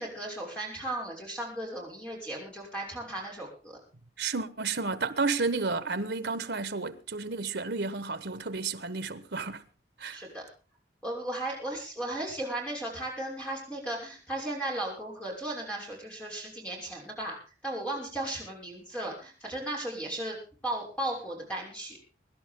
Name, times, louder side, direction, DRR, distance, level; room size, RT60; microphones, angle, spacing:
voice 1, 0.0-3.8 10.1-10.4 11.0-17.4 17.6-22.0, right 1 dB, 5° left, 6.3 m, -36 dB
voice 2, 4.2-9.6 10.0-10.2, right 4 dB, 75° right, 1.2 m, -31 dB
24.0 x 11.5 x 3.8 m
head